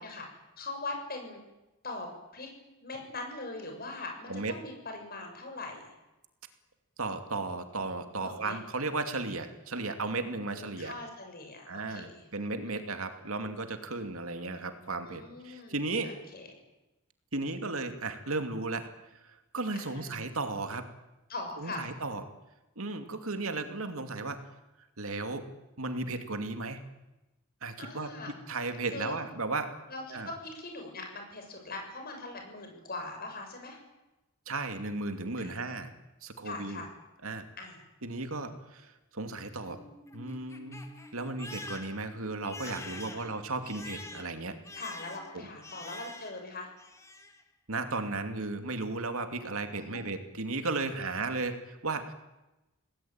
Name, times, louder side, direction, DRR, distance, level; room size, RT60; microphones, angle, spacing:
voice 1, 0.0-1.4 1.8-2.5 2.8-5.8 8.2-8.6 10.5-12.2 12.6-12.8 15.1-16.5 19.7-20.1 21.3-21.8 27.8-28.3 28.9-29.1 29.9-33.8 35.4-35.6 36.4-36.9 37.6-37.8 42.6-43.3 44.7-46.7 49.7-50.0, left 2 dB, 45° left, 3 dB, 7.0 m, -41 dB
voice 2, 7.0-10.9 11.7-16.1 17.3-18.9 19.5-20.9 21.6-22.2 22.8-24.4 25.0-25.5 25.8-26.8 27.6-28.1 28.5-29.8 30.1-30.3 34.5-35.9 36.2-36.8 37.2-37.5 38.0-39.8 40.1-44.6 45.3-45.5 47.7-52.1, right 3 dB, 75° right, 6 dB, 2.6 m, -35 dB
Crying sobbing, 39.5-46.5 46.8-47.4, left 2 dB, 15° left, 2.3 m, -46 dB
27.5 x 19.0 x 9.0 m, 1.0 s
head